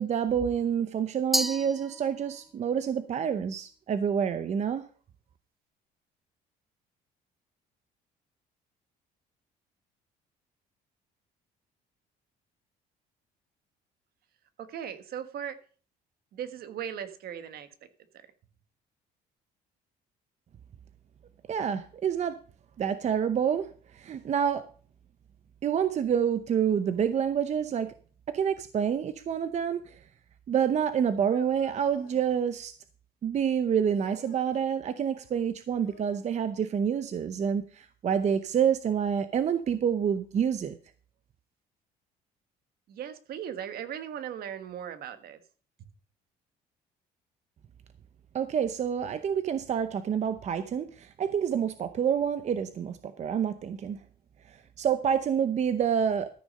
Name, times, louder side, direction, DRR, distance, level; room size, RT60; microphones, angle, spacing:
voice 1, 0.0-4.8 21.5-22.4 22.8-23.7 23.9-24.6 25.6-27.9 28.3-30.0 30.5-32.7 33.2-40.8 48.3-54.0 54.5-56.3, right 8 dB, 40° right, 11 dB, 0.8 m, -28 dB
Glass, 1.3-2.6, equal, ahead, 0.6 m, -31 dB
voice 2, 14.6-15.6 16.3-17.7 42.9-45.4, right 9 dB, 65° right, 10 dB, 1.4 m, -38 dB
sound 1, 31.2-32.3 33.9-34.7 35.7-36.4 38.4-38.5 39.4-39.5 40.5-40.6, left 6 dB, 65° left, 3.9 m, -55 dB
14.0 x 6.3 x 5.4 m, 0.41 s
cardioid pair, 110°, 17 cm